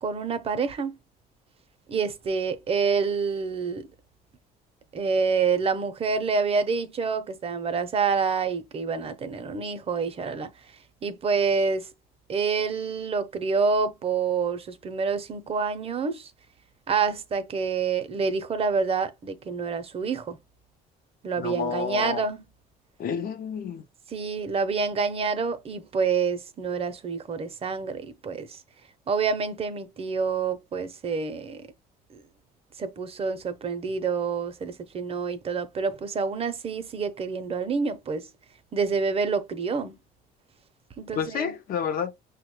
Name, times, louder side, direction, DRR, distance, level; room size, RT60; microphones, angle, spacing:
voice 1, 0.0-1.0 1.9-3.9 4.9-10.5 11.0-11.9 12.3-16.3 16.9-20.4 21.2-22.4 24.1-28.6 29.1-31.7 32.1-32.2 32.8-38.3 38.7-39.9 41.0-41.5, right 5 dB, 35° right, 0.6 m, -27 dB
voice 2, 21.4-22.2 23.0-23.8 41.2-42.1, left 7 dB, 60° left, 0.6 m, -30 dB
5.7 x 2.2 x 3.0 m
cardioid pair, 110°, 17 cm